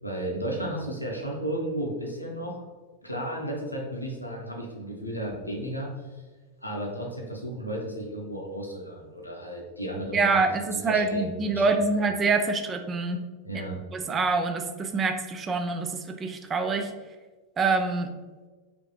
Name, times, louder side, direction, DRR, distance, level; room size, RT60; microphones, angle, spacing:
voice 1, 0.0-2.5 3.0-6.1 6.6-10.4 10.7-11.6 13.4-13.8, right 1 dB, 85° left, -1 dB, 0.9 m, -33 dB
voice 2, 10.1-13.2 13.9-16.9 17.6-18.1, right 4 dB, 25° right, 6 dB, 0.4 m, -25 dB
5.0 x 2.9 x 3.1 m, 1.3 s
figure-of-eight pair, 90°, 0 cm